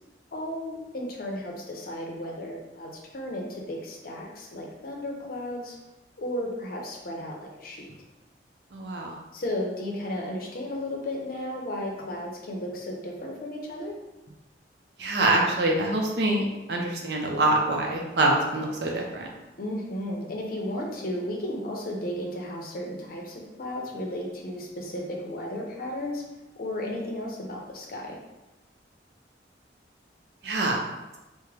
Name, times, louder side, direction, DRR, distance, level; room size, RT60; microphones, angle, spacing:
voice 1, 0.3-5.8 6.2-7.8 9.3-13.9 19.6-26.2 26.6-28.2, left 1 dB, 50° left, -1 dB, 0.6 m, -34 dB
voice 2, 8.7-9.1 15.0-19.3 30.4-30.8, right 2 dB, 65° right, 0 dB, 0.6 m, -25 dB
3.5 x 2.1 x 3.2 m, 1.0 s
head